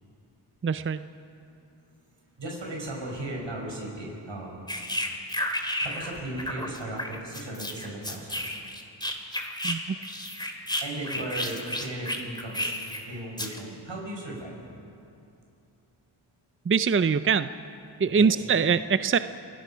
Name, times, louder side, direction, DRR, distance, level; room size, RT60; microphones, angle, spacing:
voice 1, 0.6-1.1 9.6-10.0 16.7-17.5 18.0-19.2, right 6 dB, 30° right, 12 dB, 0.5 m, -23 dB
voice 2, 2.4-4.6 5.6-8.4 10.4-10.5 10.8-12.7 13.0-14.5 18.1-18.5, right 1 dB, 75° right, -1 dB, 5.9 m, -36 dB
sound 1, 4.7-6.1 6.4-9.8 10.0-13.0 13.4-13.6, left 1 dB, 10° left, 2.9 m, -32 dB
29.5 x 17.5 x 5.7 m, 2.7 s
cardioid pair, 50°, 45 cm